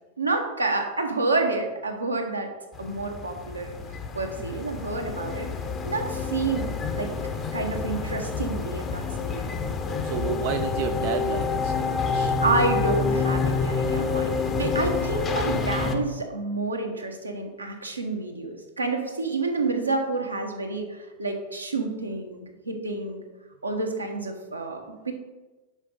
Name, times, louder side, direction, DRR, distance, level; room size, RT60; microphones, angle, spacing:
voice 1, 0.2-2.5 2.8-3.7 4.1-5.5 5.8-7.1 7.5-9.5 12.4-23.2 23.6-25.1, right 3 dB, 80° right, 3 dB, 0.9 m, -29 dB
sound 1, 2.7-15.9, left 4 dB, 25° left, 0.7 m, -28 dB
voice 2, 10.0-12.4, right 10 dB, 50° right, 7 dB, 0.3 m, -32 dB
5.7 x 4.9 x 4.7 m, 1.2 s
figure-of-eight pair, 90°, 0 cm